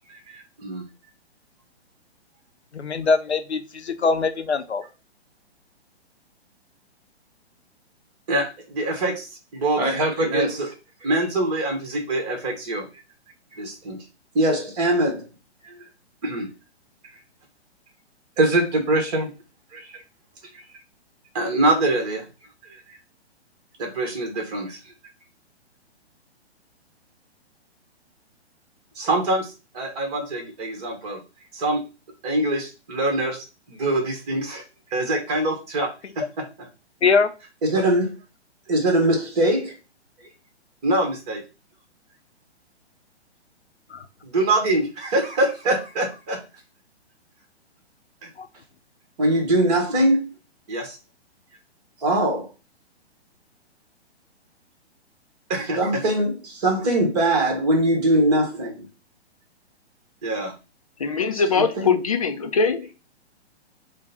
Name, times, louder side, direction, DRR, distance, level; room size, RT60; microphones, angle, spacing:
voice 1, 0.1-0.8 8.3-9.3 9.5-10.7 11.0-12.8 13.6-14.0 14.3-15.2 15.7-15.8 16.2-16.5 18.4-19.3 19.7-19.8 21.3-22.2 23.8-24.8 29.0-31.2 31.5-31.8 32.2-34.6 34.9-36.5 37.6-38.1 38.7-39.8 40.8-41.4 44.2-46.4 48.2-48.3 49.2-50.3 50.7-51.0 52.0-52.5 55.5-58.8 60.2-60.5, right 1 dB, 35° right, 1.4 m, -23 dB
voice 2, 2.7-4.8 37.0-37.3 43.9-44.0 48.4-48.5, left 4 dB, 75° left, 0.6 m, -22 dB
voice 3, 61.0-62.9, left 5 dB, 35° left, 0.4 m, -22 dB
3.5 x 2.2 x 4.1 m
figure-of-eight pair, 120°, 33 cm